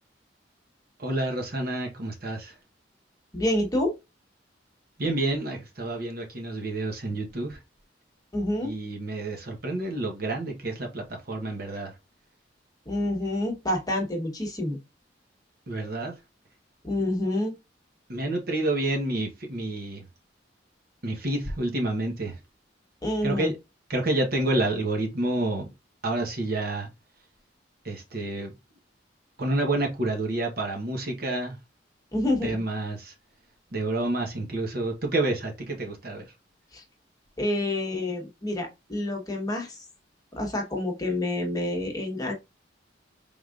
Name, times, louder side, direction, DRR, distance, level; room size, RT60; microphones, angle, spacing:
voice 1, 1.0-2.5 5.0-7.6 8.6-11.9 15.7-16.1 18.1-20.0 21.0-22.3 23.2-23.6 23.9-25.7 26.0-26.9 27.8-28.5 29.4-31.6 32.4-33.1 33.7-36.3, right 2 dB, 55° right, 1.1 m, -29 dB
voice 2, 3.3-3.9 8.3-8.7 12.9-14.8 16.8-17.5 23.0-23.5 32.1-32.5 36.7-36.8 37.4-39.8 40.3-42.3, left 1 dB, 20° left, 1.1 m, -28 dB
4.9 x 3.6 x 2.4 m
head